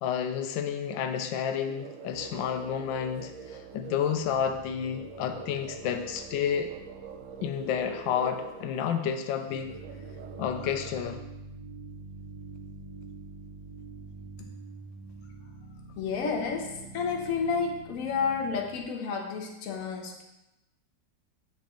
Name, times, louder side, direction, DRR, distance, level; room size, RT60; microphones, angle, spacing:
voice 1, 0.0-6.7 7.4-9.8 10.4-11.2, left 8 dB, 85° left, 7 dB, 1.3 m, -30 dB
sound 1, 1.7-10.9, right 6 dB, 70° right, 0.7 m, -45 dB
sound 2, 2.1-18.8, right 3 dB, 25° right, 0.9 m, -47 dB
voice 2, 16.0-20.2, left 5 dB, 55° left, 2 dB, 1.2 m, -31 dB
7.0 x 5.2 x 3.8 m, 0.93 s
omnidirectional pair, 2.0 m